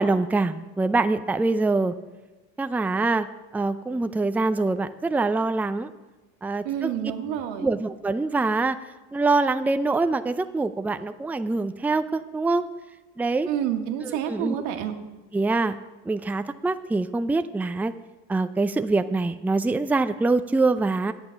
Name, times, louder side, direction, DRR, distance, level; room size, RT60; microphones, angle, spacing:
voice 1, 0.0-1.9 2.6-3.3 3.5-5.9 6.4-6.9 7.6-8.8 9.1-12.6 13.2-13.5 14.0-14.5 15.3-15.8 16.1-17.9 18.3-21.1, right 3 dB, 5° right, 9 dB, 0.5 m, -24 dB
voice 2, 6.6-7.7 13.4-14.9, right 10 dB, 85° right, 5 dB, 1.4 m, -28 dB
11.0 x 8.9 x 5.7 m, 1.1 s
supercardioid pair, 100°, 30 cm